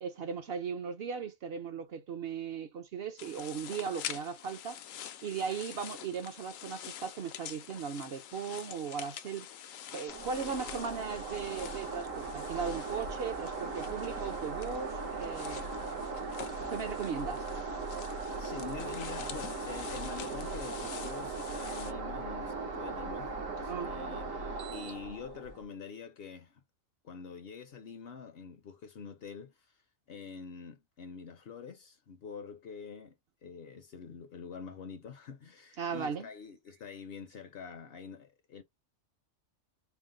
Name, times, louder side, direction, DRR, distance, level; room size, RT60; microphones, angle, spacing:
voice 1, 0.0-4.8 5.2-9.5 9.9-15.7 16.7-17.5 23.7-23.9 35.8-36.3, right 6 dB, 60° right, 0.7 m, -37 dB
sound 1, 3.2-21.9, left 10 dB, 90° left, 1.0 m, -47 dB
sound 2, 10.1-25.6, right 3 dB, 80° right, 1.5 m, -38 dB
voice 2, 18.4-24.4 24.7-26.6 27.0-29.8 30.1-33.1 33.4-38.6, left 6 dB, 60° left, 0.7 m, -46 dB
4.5 x 2.0 x 3.7 m
omnidirectional pair, 1.3 m